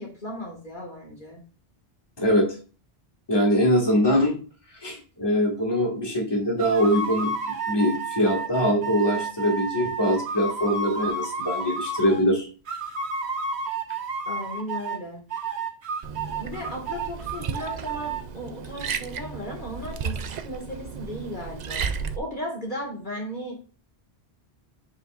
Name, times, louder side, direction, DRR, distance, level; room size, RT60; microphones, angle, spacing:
voice 1, 0.0-1.4 14.3-15.2 16.4-21.8 22.2-23.6, equal, 50° left, -1 dB, 2.1 m, -36 dB
voice 2, 3.3-4.4 4.8-12.5, equal, 25° left, -2 dB, 2.0 m, -23 dB
sound 1, 6.6-12.3 12.7-15.0 15.3-18.2, right 3 dB, 80° right, 1.3 m, -31 dB
Liquid, 16.0-22.2, right 6 dB, 50° right, 0.6 m, -34 dB
9.2 x 5.1 x 2.5 m, 0.35 s
omnidirectional pair, 1.1 m